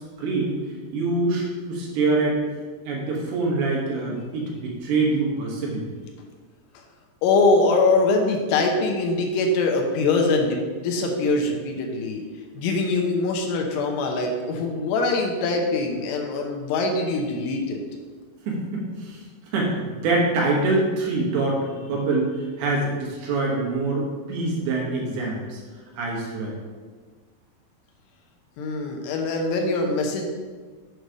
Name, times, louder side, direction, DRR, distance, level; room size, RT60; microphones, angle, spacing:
voice 1, 0.2-0.5 0.9-2.4 2.8-5.8 18.5-19.2 19.5-22.3 22.6-25.6 26.0-26.6, right 3 dB, 70° right, -2 dB, 3.3 m, -25 dB
voice 2, 7.2-12.2 12.6-17.8 28.6-30.3, left 3 dB, 80° left, 2 dB, 2.9 m, -23 dB
8.0 x 3.2 x 6.3 m, 1.5 s
omnidirectional pair, 4.8 m